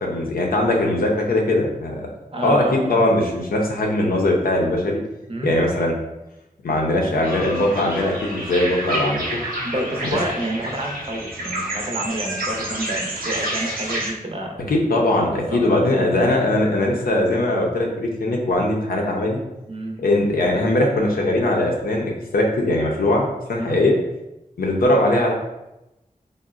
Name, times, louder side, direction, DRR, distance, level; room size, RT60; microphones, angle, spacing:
voice 1, 0.0-2.1 2.4-5.0 5.4-5.9 6.6-9.4 10.1-10.2 14.7-19.4 20.0-24.0 24.6-25.3, left 1 dB, 90° left, 0 dB, 0.5 m, -20 dB
voice 2, 2.3-2.9 5.3-5.5 9.6-14.5 15.1-15.9 19.7-20.0 23.6-23.8, right 1 dB, 40° right, 1 dB, 0.6 m, -29 dB
sound 1, 7.2-14.1, right 1 dB, 85° right, 0.6 m, -29 dB
3.8 x 2.0 x 2.3 m, 0.93 s
cardioid pair, 45°, 15 cm